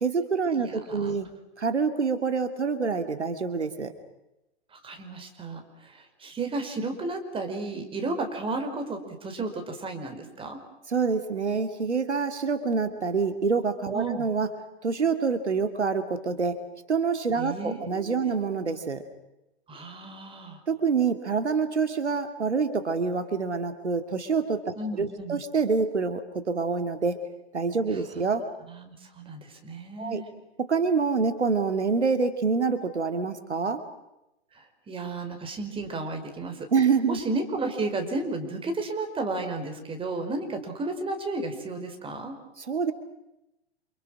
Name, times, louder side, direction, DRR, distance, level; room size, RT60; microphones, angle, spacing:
voice 1, 0.0-1.3 1.6-3.9 10.9-14.5 14.8-16.6 16.9-19.0 20.7-27.2 27.5-28.5 30.0-30.2 30.6-33.8 36.7-37.2 42.6-42.9, right 5 dB, 85° right, 8 dB, 2.8 m, -26 dB
voice 2, 0.6-1.2 4.7-10.6 13.9-14.2 17.4-18.3 19.7-20.6 24.8-25.4 27.9-28.0 28.7-30.3 34.5-36.7 37.1-42.4, right 3 dB, 15° right, 6 dB, 5.0 m, -33 dB
29.0 x 28.5 x 6.4 m, 0.91 s
hypercardioid pair, 115°, 33 cm